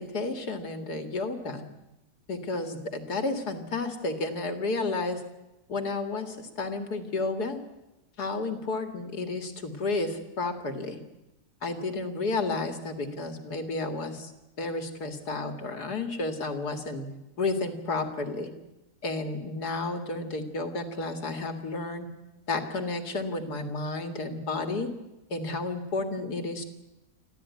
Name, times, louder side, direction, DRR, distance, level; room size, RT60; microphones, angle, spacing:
voice 1, 0.0-1.6 2.3-5.2 5.7-7.6 8.2-11.0 11.6-14.3 14.6-17.1 17.4-18.5 19.0-22.1 22.5-24.9 25.3-26.6, left 3 dB, 85° left, 6 dB, 2.6 m, -31 dB
25.0 x 15.0 x 9.5 m, 0.97 s
omnidirectional pair, 1.7 m